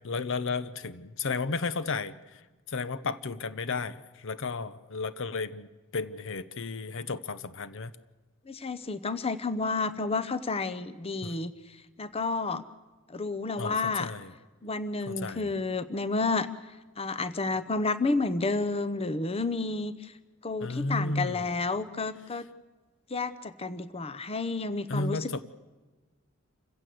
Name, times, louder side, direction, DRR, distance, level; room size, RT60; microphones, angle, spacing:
voice 1, 0.0-2.4 2.7-5.7 5.9-7.9 11.2-11.4 13.6-14.3 15.1-15.5 20.6-21.6 24.9-25.4, left 3 dB, 60° left, 14 dB, 0.8 m, -33 dB
voice 2, 8.5-11.5 12.0-12.6 13.1-14.1 14.6-16.5 17.0-20.1 20.4-22.5 23.1-25.4, left 3 dB, 30° left, 13 dB, 0.8 m, -30 dB
27.5 x 16.0 x 7.7 m, 1.2 s
head